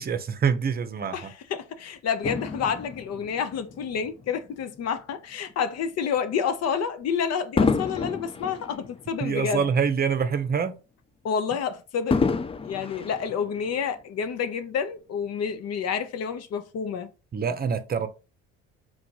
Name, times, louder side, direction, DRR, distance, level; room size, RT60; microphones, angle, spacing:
voice 1, 0.0-1.3 9.2-10.8 17.3-18.1, right 6 dB, 30° right, 0.7 m, -25 dB
voice 2, 1.1-9.6 11.2-12.3 12.6-17.1, left 7 dB, 55° left, 0.7 m, -29 dB
Fireworks, 2.2-4.8 5.5-5.7 7.6-10.1 10.4-10.5 12.1-14.0 14.7-14.8, left 4 dB, 20° left, 0.4 m, -29 dB
3.9 x 2.5 x 4.6 m
supercardioid pair, 75°, 31 cm